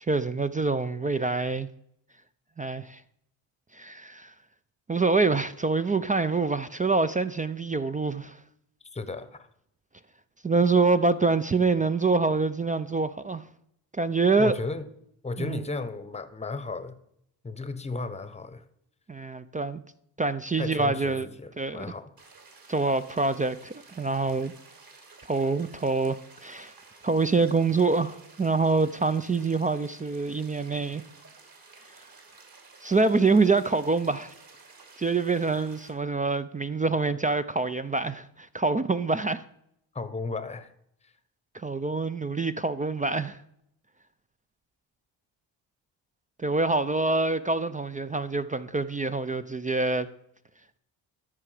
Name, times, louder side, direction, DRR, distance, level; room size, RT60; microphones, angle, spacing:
voice 1, 0.1-1.7 2.6-3.0 3.7-4.3 4.9-8.4 10.4-13.4 13.9-14.6 15.4-15.6 19.1-19.8 20.2-21.3 21.6-21.9 22.7-24.5 25.3-26.7 27.0-31.0 32.8-34.3 35.0-39.4 41.5-43.4 46.4-50.1, right 3 dB, 20° right, 0.4 m, -26 dB
voice 2, 8.8-9.5 14.4-14.9 15.2-17.0 17.4-18.6 20.6-22.1 39.9-40.7 41.0-41.1, left 3 dB, 15° left, 0.9 m, -34 dB
sound 1, 22.2-35.9, right 4 dB, 45° right, 2.7 m, -53 dB
13.0 x 4.8 x 4.9 m
supercardioid pair, 65°, 48 cm